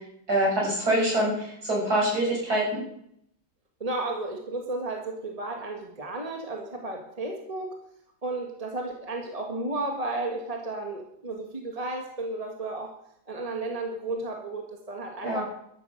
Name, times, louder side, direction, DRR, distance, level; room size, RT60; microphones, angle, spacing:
voice 1, 0.3-2.8 15.2-15.4, right 1 dB, 60° right, -3 dB, 7.0 m, -25 dB
voice 2, 3.8-7.8 8.2-12.9 13.3-15.4, right 2 dB, 20° right, 2 dB, 1.8 m, -33 dB
13.0 x 10.5 x 6.4 m, 0.71 s
omnidirectional pair, 1.9 m